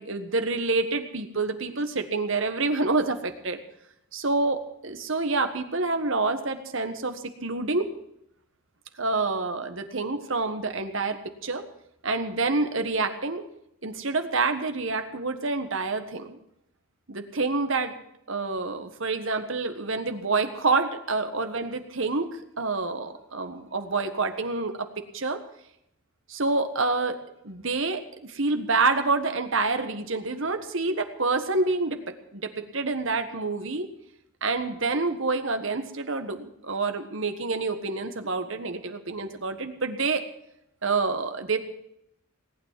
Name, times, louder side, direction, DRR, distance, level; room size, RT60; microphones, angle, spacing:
voice 1, 0.0-3.6 4.1-7.8 9.0-11.6 12.0-13.4 13.8-16.4 17.1-17.9 18.3-22.3 22.6-24.9 25.1-25.4 26.3-27.2 27.4-32.0 32.3-33.9 34.4-40.2 40.8-41.6, right 3 dB, 60° right, 8 dB, 1.5 m, -27 dB
18.5 x 9.2 x 7.5 m, 0.77 s
head